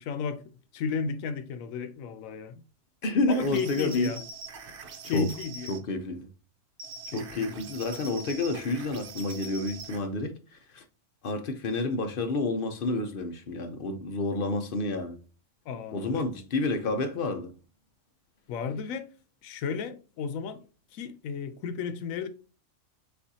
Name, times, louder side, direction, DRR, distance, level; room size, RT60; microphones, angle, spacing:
voice 1, 0.0-2.6 3.3-4.2 5.1-5.7 7.1-7.5 15.7-16.3 18.5-19.1 19.4-20.6 20.9-22.3, left 6 dB, 85° left, 1.0 m, -33 dB
voice 2, 3.0-4.1 5.1-5.3 5.7-6.3 7.1-10.8 11.2-15.2 15.9-17.5, left 2 dB, 55° left, 0.7 m, -29 dB
sound 1, 3.3-5.8 6.8-10.1, right 3 dB, 60° right, 0.9 m, -43 dB
6.7 x 2.5 x 2.7 m
omnidirectional pair, 1.4 m